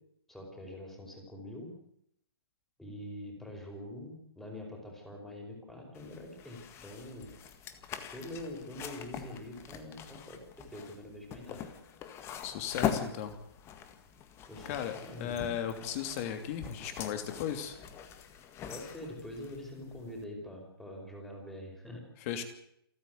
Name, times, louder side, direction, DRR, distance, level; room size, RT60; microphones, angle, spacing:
voice 1, 0.3-1.7 2.8-7.3 8.1-11.7 14.5-15.5 18.7-22.0, left 1 dB, 5° left, 1 dB, 5.1 m, -45 dB
sound 1, 5.9-20.2, left 8 dB, 20° left, 1.8 m, -42 dB
voice 2, 12.4-13.4 14.6-17.8 22.2-22.4, left 9 dB, 35° left, 8 dB, 3.0 m, -36 dB
28.5 x 9.6 x 9.6 m, 0.74 s
hypercardioid pair, 145°, 13 cm